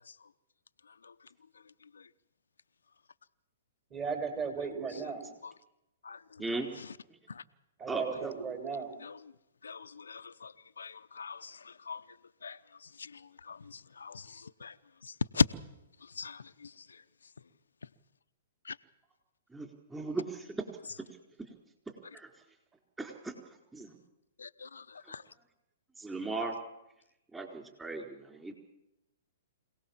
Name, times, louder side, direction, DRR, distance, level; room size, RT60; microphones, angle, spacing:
voice 1, 3.9-5.3 7.8-8.9, right 5 dB, 25° right, 5 dB, 5.9 m, -35 dB
voice 2, 7.9-8.3 19.5-20.7 22.1-22.3 23.0-23.3 23.7-24.0 25.0-25.1 26.0-26.6 27.3-28.5, right 3 dB, 10° right, 3 dB, 4.3 m, -37 dB
voice 3, 9.6-12.0 12.4-12.6 13.0-14.7 15.0-15.4 16.1-16.8 18.6-18.8 24.4-25.2, left 5 dB, 85° left, 10 dB, 0.8 m, -37 dB
25.5 x 18.0 x 7.4 m, 0.89 s
hypercardioid pair, 125°, 0 cm